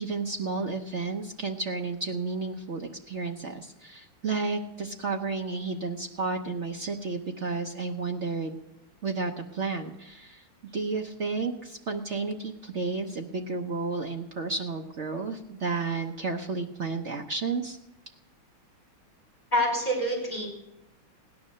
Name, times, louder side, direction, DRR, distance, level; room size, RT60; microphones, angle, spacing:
voice 1, 0.0-8.6 9.0-10.4 10.7-17.8, right 4 dB, 60° right, 4 dB, 0.7 m, -32 dB
voice 2, 19.5-20.5, equal, 20° left, -2 dB, 4.9 m, -26 dB
17.0 x 10.5 x 6.5 m, 0.88 s
omnidirectional pair, 2.3 m